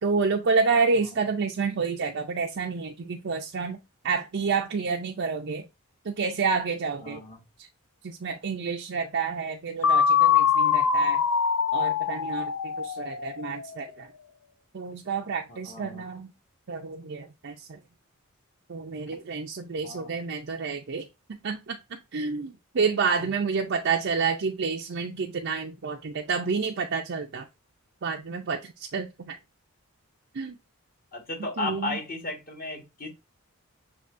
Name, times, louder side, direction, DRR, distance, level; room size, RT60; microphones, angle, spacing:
voice 1, 0.0-3.8 4.0-5.7 6.0-7.2 7.6-7.7 8.0-11.2 11.7-14.1 14.7-16.3 16.7-17.8 18.7-27.5 28.0-29.4 30.3-30.6 31.4-32.0, right 5 dB, 55° right, 0.5 m, -29 dB
voice 2, 7.0-7.4 15.5-16.0 19.8-20.2 23.2-23.3 31.1-33.1, left 2 dB, 40° left, 1.4 m, -35 dB
sound 1, 9.8-13.7, left 7 dB, 80° left, 0.5 m, -23 dB
6.6 x 2.9 x 2.5 m
head